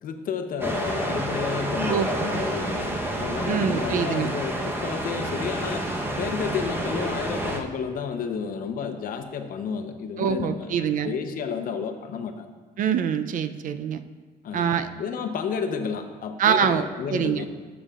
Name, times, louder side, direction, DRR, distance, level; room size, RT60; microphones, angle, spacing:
voice 1, 0.0-5.9 6.2-12.5 14.4-17.5, left 6 dB, 55° left, 7 dB, 0.8 m, -31 dB
sound 1, 0.6-7.6, right 1 dB, 15° right, 1.0 m, -29 dB
voice 2, 1.9-2.5 3.5-4.3 10.2-11.1 12.8-14.0 14.5-14.9 16.4-17.5, right 8 dB, 50° right, 10 dB, 0.5 m, -25 dB
12.0 x 7.0 x 2.4 m, 1.4 s
cardioid pair, 110°, 17 cm